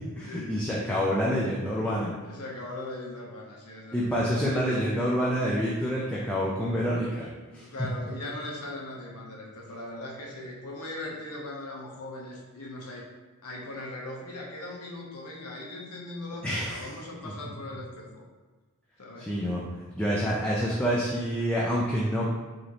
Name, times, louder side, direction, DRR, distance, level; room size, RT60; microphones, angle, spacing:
voice 1, 0.2-2.1 3.9-7.3 7.5-7.6 16.4-16.8 17.2-17.3 19.2-19.6 20.0-22.4, equal, 5° left, -6 dB, 0.4 m, -27 dB
voice 2, 2.2-4.7 7.6-13.1 13.4-18.2 19.0-19.4, left 2 dB, 90° left, -2 dB, 0.9 m, -39 dB
4.9 x 2.6 x 3.0 m, 1.3 s
head